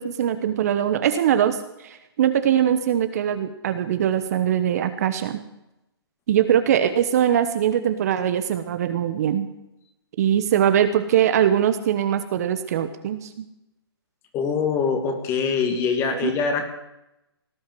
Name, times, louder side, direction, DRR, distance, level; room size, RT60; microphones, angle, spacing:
voice 1, 0.0-5.4 6.3-9.5 10.2-13.5 16.2-16.3, right 10 dB, 40° right, 10 dB, 1.1 m, -22 dB
voice 2, 14.3-16.6, left 5 dB, 20° left, 6 dB, 2.2 m, -23 dB
18.0 x 8.4 x 7.7 m, 0.88 s
hypercardioid pair, 155°, 13 cm